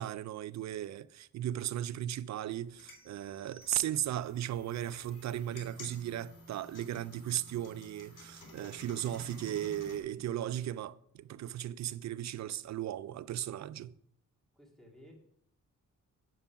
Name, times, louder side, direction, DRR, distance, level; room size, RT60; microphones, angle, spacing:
voice 1, 0.0-13.9, right 12 dB, 60° right, 0.4 m, -36 dB
sound 1, 2.6-10.0, left 2 dB, 85° left, 2.8 m, -53 dB
sound 2, 2.9-4.4, right 3 dB, 30° right, 1.0 m, -63 dB
voice 2, 14.5-15.1, equal, ahead, 2.2 m, -56 dB
9.2 x 6.9 x 5.8 m
wide cardioid pair, 135°, 31 cm